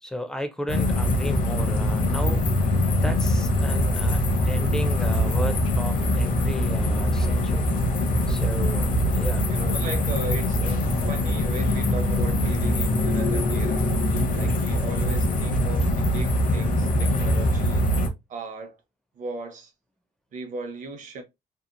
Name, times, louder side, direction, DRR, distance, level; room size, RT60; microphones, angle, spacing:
voice 1, 0.0-2.4 2.9-4.2 4.5-7.8 8.3-8.9 9.1-9.5 14.2-14.5, equal, 5° left, 0.4 m, -34 dB
sound 1, 0.7-18.1, left 1 dB, 55° left, 0.7 m, -23 dB
voice 2, 8.5-8.9 9.5-13.9 14.3-17.8 18.3-18.8 19.1-19.7 20.3-21.2, right 3 dB, 50° right, 0.8 m, -37 dB
2.8 x 2.4 x 2.4 m
cardioid pair, 155°, 16 cm